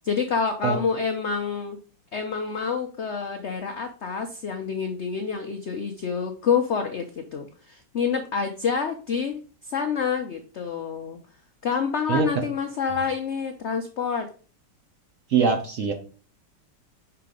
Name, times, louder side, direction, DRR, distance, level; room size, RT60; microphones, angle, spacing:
voice 1, 0.0-1.8 2.1-11.2 11.6-14.3, left 6 dB, 70° left, 5 dB, 0.6 m, -27 dB
voice 2, 12.1-12.4 15.3-15.9, right 6 dB, 60° right, 5 dB, 0.8 m, -22 dB
5.7 x 3.9 x 5.0 m, 0.38 s
omnidirectional pair, 2.0 m